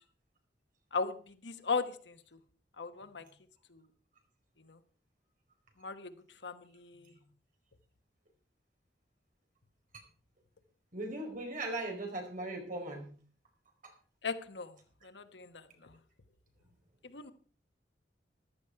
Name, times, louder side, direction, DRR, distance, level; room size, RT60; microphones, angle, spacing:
voice 1, 1.4-2.2 2.8-3.2 3.7-3.8 4.7-4.8 5.8-6.1 6.4-7.1 14.2-14.7 15.0-15.9 17.0-17.3, left 4 dB, 85° left, 10 dB, 1.2 m, -37 dB
voice 2, 10.9-13.1 13.8-13.9, right 2 dB, 50° right, 2 dB, 4.6 m, -38 dB
14.5 x 12.0 x 4.7 m, 0.42 s
head